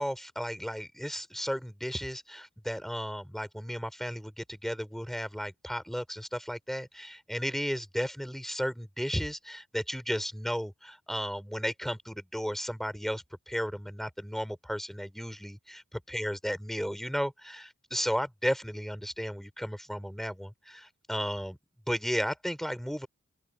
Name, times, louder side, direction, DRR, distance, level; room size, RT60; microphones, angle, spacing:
voice 1, 0.0-21.6 21.9-23.1, equal, ahead, 4.0 m, -34 dB
open air
wide cardioid pair, 50°, 30 cm